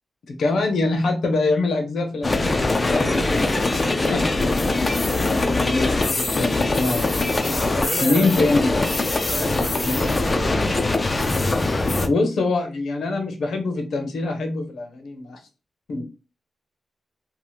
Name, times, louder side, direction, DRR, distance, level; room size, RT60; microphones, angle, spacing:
voice 1, 0.3-3.4 4.1-4.2 5.5-7.5 8.0-8.7 9.8-10.1 12.1-15.4 15.9-16.0, left 3 dB, 75° left, 0.7 m, -24 dB
sound 1, 2.2-12.1, left 2 dB, 25° left, 0.3 m, -22 dB
voice 2, 2.8-4.2 7.5-8.7 9.2-10.8, right 2 dB, 35° right, 0.5 m, -33 dB
2.8 x 2.1 x 3.2 m
wide cardioid pair, 150°, 0 cm